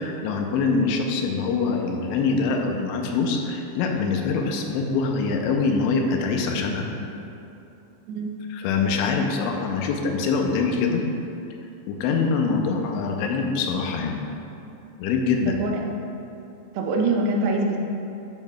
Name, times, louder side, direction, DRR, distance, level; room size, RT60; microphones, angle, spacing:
voice 1, 0.0-6.9 8.5-11.0 11.9-14.2 15.0-15.6, left 4 dB, 90° left, 2 dB, 2.9 m, -24 dB
voice 2, 8.1-8.4 15.5-15.9 16.7-17.8, right 2 dB, 80° right, 1 dB, 2.6 m, -24 dB
10.5 x 7.3 x 2.3 m, 2.8 s
omnidirectional pair, 5.2 m